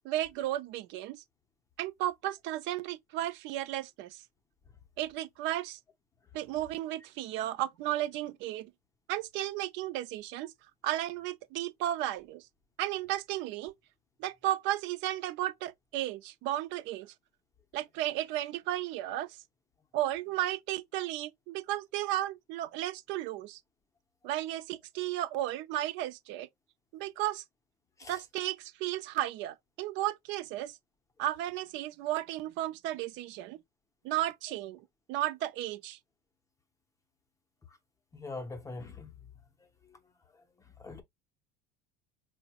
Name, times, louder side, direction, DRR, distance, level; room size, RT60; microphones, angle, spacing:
voice 1, 0.0-1.2 1.8-4.2 5.0-5.8 6.3-8.7 9.1-10.5 10.8-12.5 12.8-13.7 14.2-17.1 17.7-19.4 19.9-23.6 24.2-26.5 26.9-27.4 28.1-30.8 31.2-33.6 34.0-34.8 35.1-36.0, right 14 dB, 65° right, 0.4 m, -34 dB
voice 2, 38.1-39.1 40.8-41.0, left 3 dB, 15° left, 0.5 m, -42 dB
4.4 x 2.0 x 2.8 m
cardioid pair, 145°, 21 cm